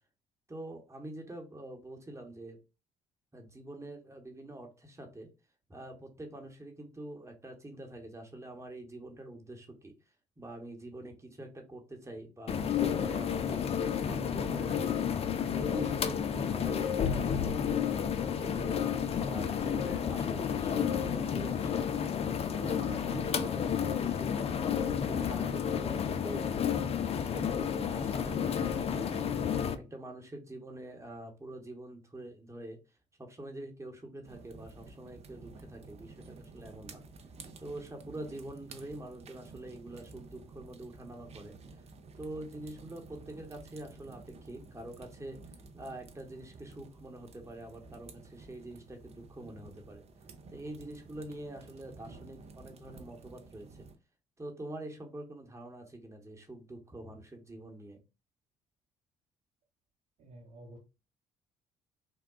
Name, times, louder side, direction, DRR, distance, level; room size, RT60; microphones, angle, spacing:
voice 1, 0.5-2.6 3.3-5.3 5.7-9.9 10.4-13.7 14.0-15.2 15.5-18.8 19.2-22.0 22.5-24.6 25.0-26.4 27.2-32.8 33.2-37.0 37.6-41.5 42.2-45.4 45.7-50.0 50.5-53.9 54.4-58.0, right 1 dB, 20° right, 2 dB, 1.1 m, -45 dB
sound 1, 12.5-29.8, left 8 dB, 40° left, 0.4 m, -31 dB
sound 2, 34.2-53.9, right 3 dB, 45° right, 0.6 m, -52 dB
voice 2, 60.2-60.8, right 1 dB, 60° right, -5 dB, 1.0 m, -50 dB
3.5 x 2.2 x 2.3 m, 0.29 s
hypercardioid pair, 55°, 16 cm